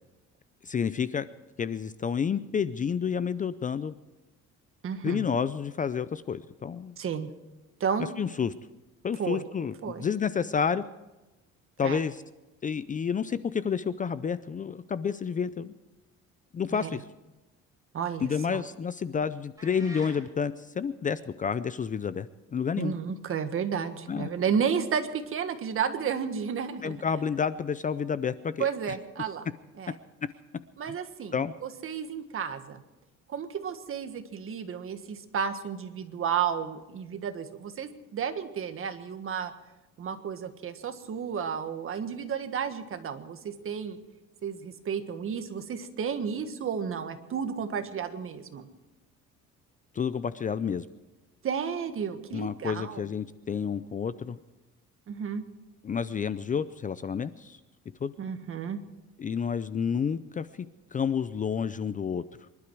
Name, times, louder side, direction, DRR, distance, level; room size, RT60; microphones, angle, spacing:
voice 1, 0.6-1.3 1.6-3.9 5.0-7.0 8.2-8.5 9.0-10.8 11.8-12.2 12.6-15.7 16.5-17.0 18.2-22.3 22.5-22.9 24.1-24.3 26.8-28.9 31.3-31.5 49.9-50.9 52.3-54.4 55.8-57.6 58.0-58.1 59.2-62.2, left 6 dB, 25° left, 15 dB, 0.5 m, -30 dB
voice 2, 4.8-5.2 7.0-7.3 7.8-8.1 9.2-9.4 9.8-10.1 11.8-12.0 16.7-16.9 17.9-18.6 22.8-27.0 28.6-29.5 29.8-30.0 30.8-32.8 33.3-39.5 40.0-44.0 44.4-48.7 51.4-53.0 55.1-55.4 58.2-58.8, right 7 dB, 45° right, 8 dB, 1.6 m, -32 dB
sound 1, 19.6-20.2, right 1 dB, 10° right, 4.7 m, -45 dB
25.0 x 12.0 x 4.7 m, 1.1 s
cardioid pair, 130°, 30 cm